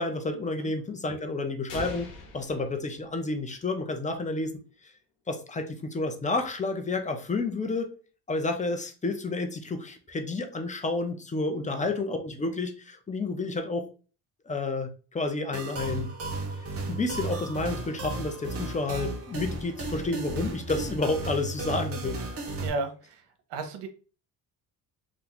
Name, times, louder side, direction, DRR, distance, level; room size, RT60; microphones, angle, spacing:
voice 1, 0.0-4.5 5.3-7.9 8.3-13.9 14.5-16.1 16.9-22.2, left 3 dB, 15° left, 5 dB, 0.6 m, -30 dB
sound 1, 1.7-3.6, left 2 dB, 90° left, 1.0 m, -42 dB
sound 2, 15.5-22.7, right 2 dB, 30° right, 0.9 m, -34 dB
voice 2, 22.6-23.2 23.5-23.9, right 3 dB, 65° right, 7 dB, 0.9 m, -34 dB
2.8 x 2.3 x 3.9 m, 0.37 s
supercardioid pair, 75°, 44 cm